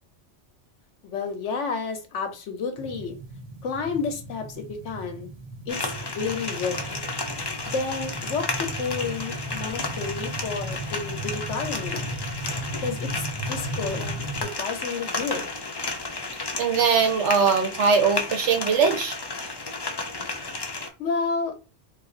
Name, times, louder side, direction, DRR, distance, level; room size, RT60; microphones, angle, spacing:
voice 1, 1.0-3.2 3.6-5.3 5.7-7.0 7.7-12.1 12.8-15.5 21.0-21.5, left 5 dB, 90° left, 6 dB, 1.2 m, -31 dB
sound 1, 2.8-14.4, right 1 dB, 40° right, 0.7 m, -36 dB
sound 2, 5.7-20.9, left 3 dB, 35° left, 0.4 m, -33 dB
voice 2, 16.6-19.2, right 6 dB, 90° right, 6 dB, 1.0 m, -21 dB
2.7 x 2.4 x 3.8 m, 0.30 s
omnidirectional pair, 1.2 m